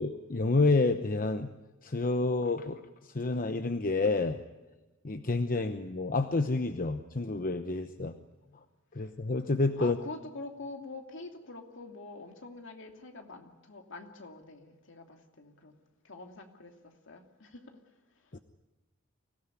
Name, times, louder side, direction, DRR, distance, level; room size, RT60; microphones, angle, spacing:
voice 1, 0.0-1.5 1.8-4.4 5.0-8.1 8.9-10.0 18.3-18.4, left 3 dB, 40° left, 9 dB, 0.9 m, -29 dB
voice 2, 9.8-15.8 16.0-17.8 18.3-18.4, left 3 dB, 65° left, 5 dB, 2.7 m, -45 dB
24.5 x 16.5 x 9.7 m, 1.1 s
head